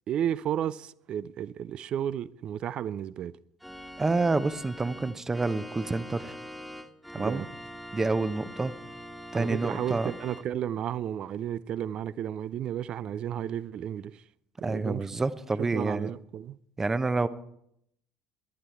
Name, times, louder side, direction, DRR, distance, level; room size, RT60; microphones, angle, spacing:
voice 1, 0.1-3.3 7.2-7.5 9.3-14.2 14.6-15.1 15.6-16.6, right 10 dB, 50° right, 0.4 m, -33 dB
Organ, 3.6-10.4, equal, ahead, 1.5 m, -43 dB
voice 2, 4.0-6.4 7.1-7.4 7.9-8.7 9.3-10.1 14.6-16.1 16.8-17.3, right 3 dB, 20° right, 0.9 m, -28 dB
18.5 x 11.0 x 4.7 m
figure-of-eight pair, 60°, 2 cm